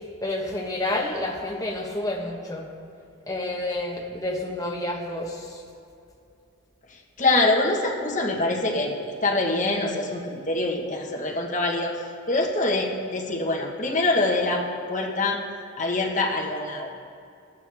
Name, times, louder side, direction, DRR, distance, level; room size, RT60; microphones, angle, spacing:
voice 1, 0.2-2.7 3.3-5.6, left 1 dB, 15° left, -1 dB, 1.2 m, -29 dB
voice 2, 7.2-11.9 12.3-14.6 14.9-15.4 15.8-16.9, left 2 dB, 35° left, -1 dB, 1.3 m, -24 dB
16.0 x 11.0 x 3.5 m, 2.5 s
head